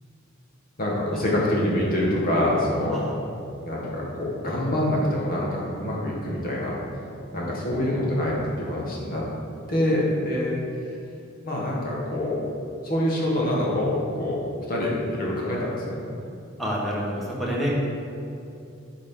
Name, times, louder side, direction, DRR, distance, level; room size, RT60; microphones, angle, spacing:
voice 1, 0.8-3.0 3.6-6.8 7.3-9.2 9.7-10.5 11.4-12.4 12.8-14.4 14.7-16.0, left 1 dB, 45° left, -4 dB, 1.6 m, -25 dB
voice 2, 16.6-17.7, equal, ahead, -6 dB, 1.4 m, -28 dB
8.9 x 5.0 x 3.8 m, 2.6 s
head